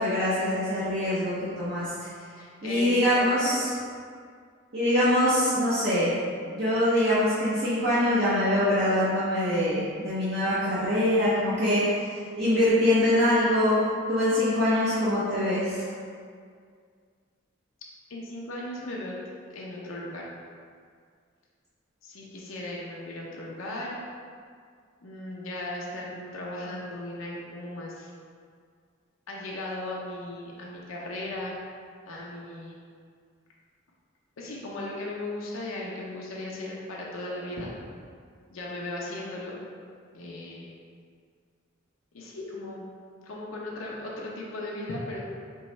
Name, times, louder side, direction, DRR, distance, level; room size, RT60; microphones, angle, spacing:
voice 1, 0.0-2.1 2.6-3.6 4.7-6.1 6.5-12.0 12.4-13.8 14.1-15.9, left 1 dB, 50° right, -10 dB, 0.7 m, -24 dB
voice 2, 2.4-3.6 18.1-19.2 19.5-20.3 22.0-24.0 25.0-28.1 29.3-31.5 32.1-32.8 34.4-37.7 38.5-39.6 40.1-40.7 42.1-42.8 43.2-45.2, left 1 dB, 80° left, -4 dB, 0.6 m, -37 dB
4.5 x 3.1 x 3.1 m, 2.1 s
head